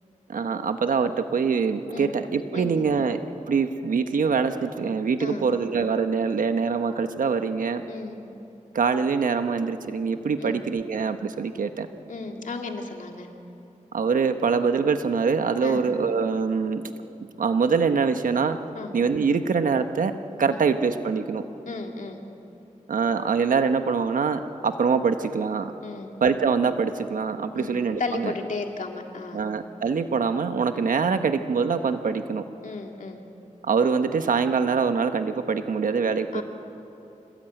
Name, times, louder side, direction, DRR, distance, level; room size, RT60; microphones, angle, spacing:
voice 1, 0.3-3.2 3.5-7.8 8.7-11.9 13.9-16.8 17.4-18.6 18.9-20.1 20.4-21.4 22.9-25.7 26.2-28.4 29.3-32.4 33.6-36.4, right 5 dB, 85° right, 8 dB, 1.1 m, -24 dB
voice 2, 7.9-8.2 10.4-10.6 12.1-13.3 15.6-15.8 18.7-18.9 20.5-20.6 21.7-22.2 25.8-26.1 27.5-29.4 32.6-33.2 36.3-36.4, left 3 dB, 70° left, 2 dB, 2.4 m, -34 dB
27.0 x 20.0 x 9.1 m, 2.9 s
wide cardioid pair, 85°, 14 cm